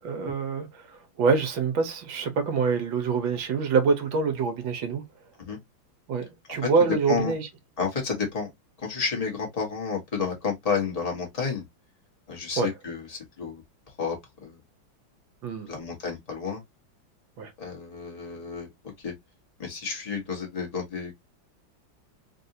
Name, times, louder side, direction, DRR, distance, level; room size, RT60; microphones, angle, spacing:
voice 1, 0.0-5.0 6.1-7.5 12.6-12.7 15.4-15.7 17.4-17.5, right 5 dB, 75° right, 1.6 m, -26 dB
voice 2, 7.8-8.5 8.8-11.6 12.3-13.6 14.0-14.6 15.7-16.6 17.6-18.7 19.0-19.1 19.6-21.2, left 5 dB, 25° left, 1.1 m, -31 dB
3.7 x 2.6 x 2.7 m
omnidirectional pair, 2.2 m